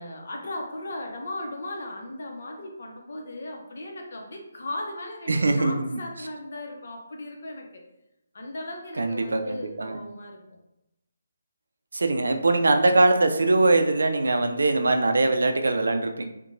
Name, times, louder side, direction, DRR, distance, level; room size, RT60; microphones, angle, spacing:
voice 1, 0.0-7.8 8.3-10.6, left 1 dB, 60° left, 1 dB, 0.6 m, -37 dB
voice 2, 5.3-6.0 9.0-10.0 11.9-16.2, right 2 dB, 85° right, 6 dB, 0.4 m, -22 dB
2.8 x 2.1 x 2.5 m, 0.89 s
hypercardioid pair, 165°, 0 cm